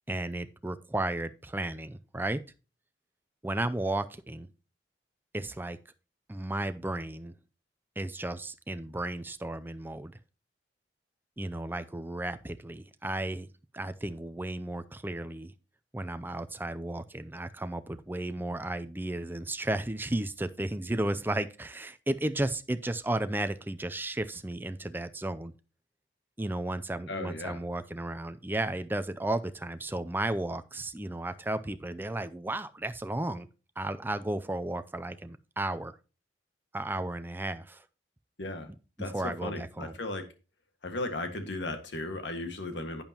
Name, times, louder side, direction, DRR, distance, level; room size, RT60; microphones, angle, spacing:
voice 1, 0.1-2.4 3.4-4.5 5.3-5.8 6.3-7.4 8.0-10.1 11.4-13.5 13.7-15.5 15.9-25.5 26.4-33.5 33.8-36.0 36.7-37.8 39.1-39.9, right 1 dB, 10° right, 0.5 m, -34 dB
voice 2, 27.1-27.6 38.4-38.7 39.0-40.2 40.8-43.0, left 2 dB, 80° left, 1.7 m, -36 dB
11.0 x 8.8 x 2.9 m
head